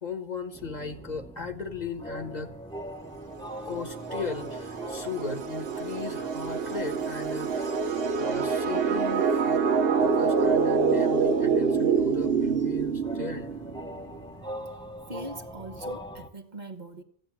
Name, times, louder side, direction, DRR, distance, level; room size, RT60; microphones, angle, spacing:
voice 1, 0.0-2.5 3.6-7.8 8.2-9.6 10.0-13.5, left 4 dB, 45° left, 1.5 m, -37 dB
sound 1, 0.5-16.3, equal, 5° left, 1.0 m, -42 dB
sound 2, 3.3-13.8, right 5 dB, 70° right, 1.2 m, -26 dB
voice 2, 15.1-17.0, right 1 dB, 45° right, 1.3 m, -41 dB
14.5 x 9.2 x 7.3 m
omnidirectional pair, 1.0 m